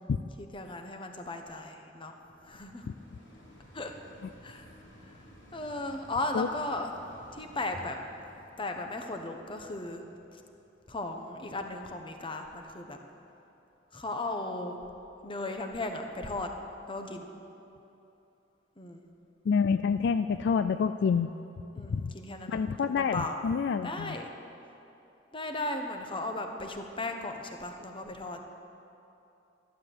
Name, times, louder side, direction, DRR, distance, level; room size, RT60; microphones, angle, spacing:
voice 1, 0.4-2.2 2.4-2.9 3.7-3.9 4.4-4.7 5.5-6.9 7.3-8.0 8.6-10.0 10.3-10.4 10.9-13.0 13.9-14.8 15.2-16.5 16.9-17.3 18.8-19.0 21.8-23.4 23.8-24.3 25.3-28.4, left 2 dB, 25° left, 4 dB, 1.1 m, -36 dB
sound 1, 1.3-12.6 13.2-13.3, equal, 80° left, 3.7 m, -56 dB
voice 2, 19.5-21.3 21.9-22.1 22.5-24.1, left 6 dB, 65° left, 10 dB, 0.3 m, -27 dB
12.0 x 12.0 x 7.8 m, 2.9 s
head